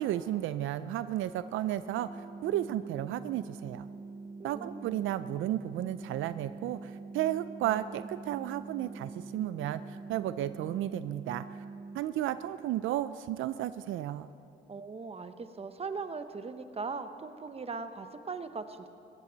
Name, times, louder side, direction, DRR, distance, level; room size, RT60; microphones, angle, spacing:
voice 1, 0.0-3.9 4.4-11.6 11.9-14.3, right 12 dB, 80° right, 13 dB, 0.4 m, -33 dB
sound 1, 2.0-12.0, right 3 dB, 10° right, 1.7 m, -45 dB
voice 2, 4.4-5.0 14.7-18.9, right 4 dB, 30° right, 9 dB, 1.0 m, -39 dB
21.5 x 16.0 x 4.0 m, 2.7 s
cardioid pair, 90°, 20 cm